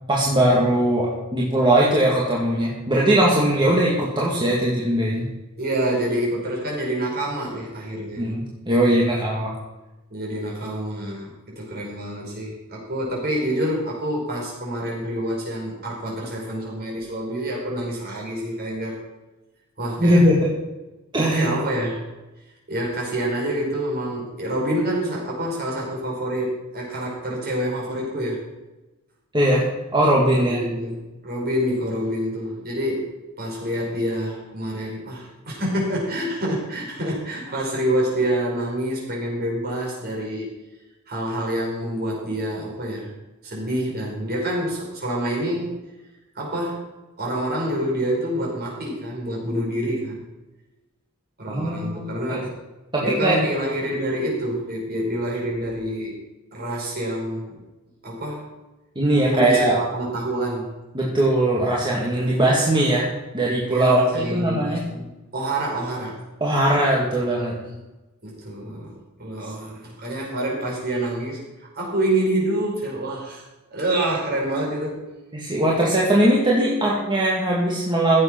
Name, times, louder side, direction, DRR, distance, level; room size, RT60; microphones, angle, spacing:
voice 1, 0.1-5.3 8.2-9.5 20.0-20.5 21.1-21.5 29.3-29.7 29.9-30.6 51.5-52.4 52.9-53.4 59.0-59.7 60.9-63.1 63.3-64.8 66.4-67.5 75.3-78.2, right 1 dB, 20° right, -4 dB, 2.2 m, -20 dB
voice 2, 5.6-8.3 10.1-19.0 19.8-20.2 21.3-22.0 22.7-28.4 30.3-33.1 33.4-40.5 41.1-43.1 43.4-45.8 46.4-46.8 47.2-50.2 51.4-52.4 53.0-56.2 56.5-57.6 58.0-58.5 59.3-60.7 63.7-65.1 65.3-66.2 68.2-71.4 71.7-73.4 73.7-75.1, right 1 dB, 45° right, -3 dB, 5.4 m, -27 dB
15.5 x 8.1 x 6.0 m, 1.1 s
head